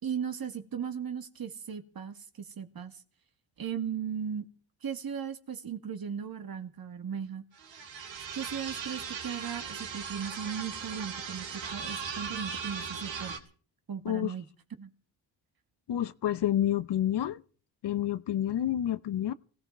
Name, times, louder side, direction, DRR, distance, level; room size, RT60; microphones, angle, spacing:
voice 1, 0.0-3.0 3.6-4.5 4.8-7.4 8.3-13.4 13.9-14.4 14.8-14.9, right 7 dB, 50° right, 2.2 m, -37 dB
sound 1, 7.6-13.4, right 6 dB, 70° right, 3.2 m, -38 dB
voice 2, 15.9-17.4 17.8-19.3, left 11 dB, 60° left, 0.9 m, -29 dB
18.5 x 17.0 x 4.6 m
cardioid pair, 90°, 46 cm